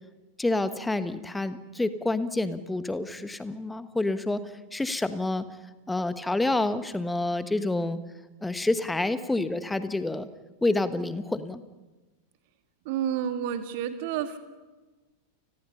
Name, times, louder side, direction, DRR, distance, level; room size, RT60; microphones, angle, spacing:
voice 1, 0.4-4.4 4.7-5.5 5.9-8.0 8.4-10.3 10.6-11.6, left 2 dB, 5° left, 12 dB, 1.4 m, -28 dB
voice 2, 12.8-14.4, right 9 dB, 50° right, 8 dB, 2.4 m, -30 dB
30.0 x 21.0 x 5.7 m, 1.2 s
figure-of-eight pair, 90°, 0 cm